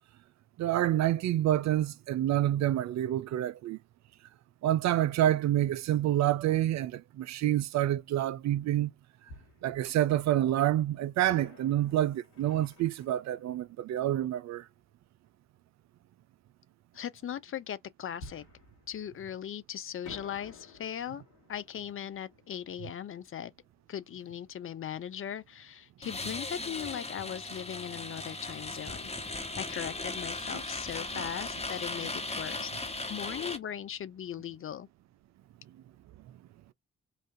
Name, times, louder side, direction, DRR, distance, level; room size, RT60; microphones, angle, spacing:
voice 1, 0.6-3.8 4.6-8.9 9.6-14.6 30.5-30.6, right 12 dB, 60° right, 0.4 m, -28 dB
Fireworks, 8.0-8.1 9.3-10.4 11.3-14.7 18.2-19.6 20.0-24.6 24.8-24.9 25.5-25.7, left 3 dB, 75° left, 2.0 m, -53 dB
voice 2, 16.9-18.4 18.9-21.2 21.5-23.5 23.9-32.7 33.1-34.9, left 9 dB, 40° left, 0.5 m, -39 dB
sound 1, 26.0-33.6, left 2 dB, 20° left, 1.2 m, -37 dB
3.9 x 2.5 x 2.6 m
hypercardioid pair, 40°, 32 cm